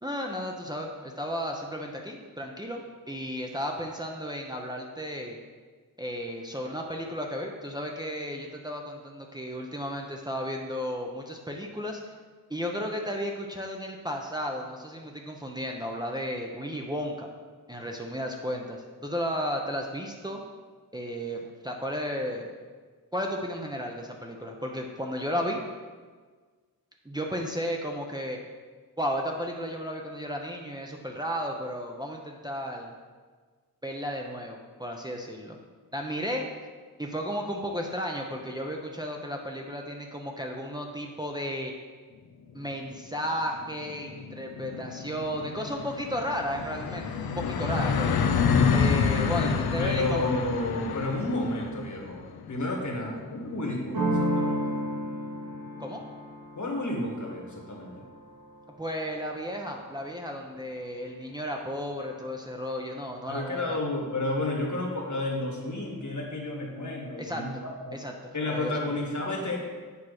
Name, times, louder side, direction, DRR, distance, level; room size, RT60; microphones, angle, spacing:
voice 1, 0.0-5.4 6.0-12.1 12.5-17.3 17.7-20.4 20.9-22.5 23.1-25.6 27.0-28.4 29.0-32.9 33.8-35.6 35.9-36.5 37.0-41.7 42.5-48.2 48.7-50.3 55.8-56.0 58.8-63.8 67.2-67.4 67.9-68.1 68.5-68.8, equal, 10° right, 0 dB, 0.7 m, -34 dB
sound 1, 42.7-42.8 43.1-43.2 43.5-54.9, left 6 dB, 90° left, 0.5 m, -29 dB
voice 2, 49.4-54.6 56.5-58.0 63.3-68.0 68.3-69.6, left 2 dB, 55° left, 0 dB, 1.6 m, -31 dB
sound 2, 53.9-59.5, equal, 75° right, 1.5 m, -32 dB
8.4 x 3.1 x 6.4 m, 1.5 s
wide cardioid pair, 75°, 36 cm